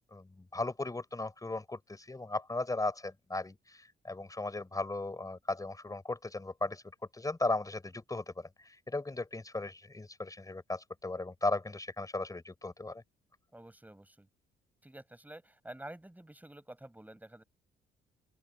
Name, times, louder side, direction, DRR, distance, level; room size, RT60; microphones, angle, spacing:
voice 1, 0.1-6.8 7.1-13.0, left 2 dB, 15° left, 4.5 m, -36 dB
voice 2, 13.5-14.3 14.8-17.4, right 1 dB, 10° right, 7.3 m, -49 dB
open air
cardioid pair, 90°, 20 cm